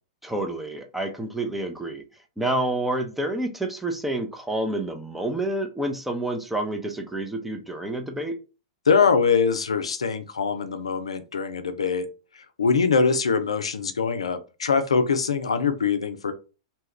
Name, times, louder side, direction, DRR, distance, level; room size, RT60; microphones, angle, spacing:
voice 1, 0.2-2.0 2.4-8.4, right 1 dB, 5° right, 4 dB, 0.6 m, -28 dB
voice 2, 8.9-12.1 12.4-16.3, left 5 dB, 85° left, 9 dB, 0.4 m, -23 dB
2.8 x 2.3 x 3.2 m, 0.32 s
hypercardioid pair, 105°, 3 cm